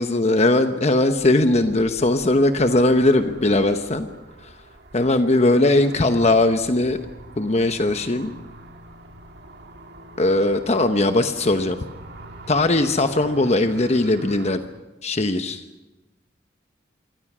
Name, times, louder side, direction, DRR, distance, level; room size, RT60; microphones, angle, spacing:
voice 1, 0.0-4.1 4.4-4.5 4.9-7.0 7.4-8.3 10.2-11.8 12.5-14.6 15.0-15.6, left 2 dB, 35° left, 8 dB, 1.0 m, -19 dB
sound 1, 0.9-14.6, right 1 dB, 60° right, 2.1 m, -43 dB
27.5 x 24.0 x 6.2 m, 1.1 s
head